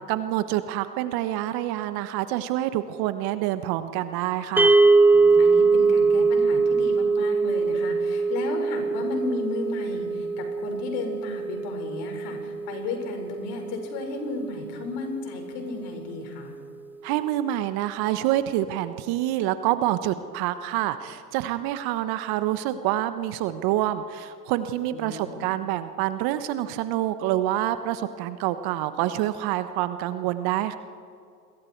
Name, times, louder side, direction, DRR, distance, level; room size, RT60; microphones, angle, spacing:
voice 1, 0.1-4.8 17.0-30.8, right 13 dB, 45° right, 11 dB, 1.2 m, -27 dB
sound 1, 4.6-14.9, right 4 dB, 5° right, 0.5 m, -22 dB
voice 2, 5.1-16.5 24.9-25.5, left 3 dB, 50° left, 3 dB, 5.6 m, -34 dB
28.5 x 22.5 x 4.7 m, 2.3 s
hypercardioid pair, 90°, 49 cm